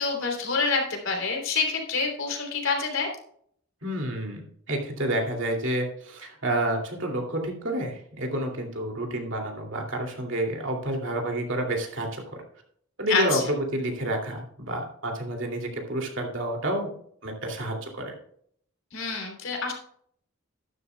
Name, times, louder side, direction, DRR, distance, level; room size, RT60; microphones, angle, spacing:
voice 1, 0.0-3.1 13.1-13.4 18.9-19.7, left 4 dB, 70° left, 1 dB, 3.3 m, -27 dB
voice 2, 3.8-4.4 4.7-12.4 13.0-16.9 17.2-18.1, right 1 dB, 65° right, 2 dB, 2.6 m, -29 dB
12.0 x 11.5 x 2.3 m, 0.64 s
head